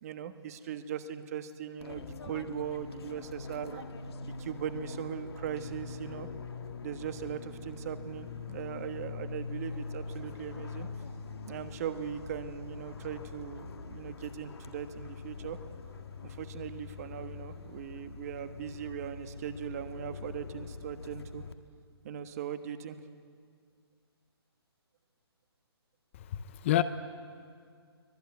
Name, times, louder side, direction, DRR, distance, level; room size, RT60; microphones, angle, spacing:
voice 1, 0.0-3.8 4.2-6.3 6.8-10.9 11.5-15.6 16.2-21.4 22.0-23.0, right 9 dB, 35° right, 1.3 m, -39 dB
Fixed-wing aircraft airplane, 1.8-21.5, left 4 dB, 70° left, 1.7 m, -43 dB
voice 2, 26.2-26.8, left 13 dB, 30° left, 0.7 m, -28 dB
24.0 x 18.0 x 9.5 m
hypercardioid pair, 155°, 14 cm